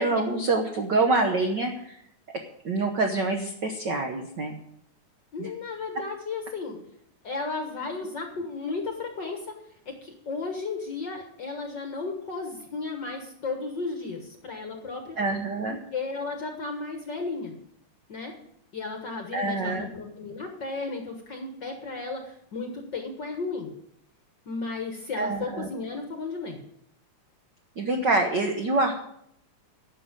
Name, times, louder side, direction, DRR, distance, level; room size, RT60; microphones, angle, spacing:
voice 1, 0.0-2.0 2.6-4.6 5.4-5.5 15.2-15.8 19.3-19.9 25.2-25.7 27.8-28.9, right 3 dB, 75° right, 4 dB, 1.0 m, -26 dB
voice 2, 5.3-6.8 7.2-9.5 9.8-15.2 15.7-17.5 18.1-18.3 18.7-23.7 24.4-26.6, left 3 dB, 50° left, 4 dB, 1.4 m, -34 dB
11.0 x 6.7 x 8.9 m, 0.73 s
omnidirectional pair, 3.6 m